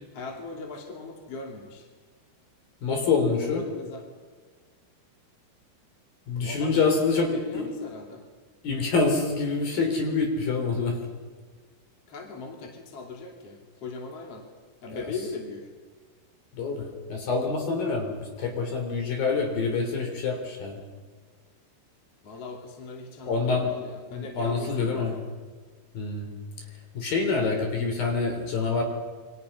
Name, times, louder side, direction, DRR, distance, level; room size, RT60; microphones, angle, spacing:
voice 1, 0.1-1.9 3.4-4.0 6.4-8.2 12.1-14.4 14.8-15.7 22.2-25.2, left 3 dB, 40° left, 1 dB, 3.3 m, -39 dB
voice 2, 2.8-3.6 6.3-7.7 8.6-11.0 14.9-15.0 16.5-20.8 23.3-23.7 24.1-25.1 25.9-26.3 27.0-28.8, left 4 dB, 55° left, 3 dB, 5.2 m, -26 dB
28.5 x 23.0 x 5.6 m, 1.5 s
omnidirectional pair, 5.0 m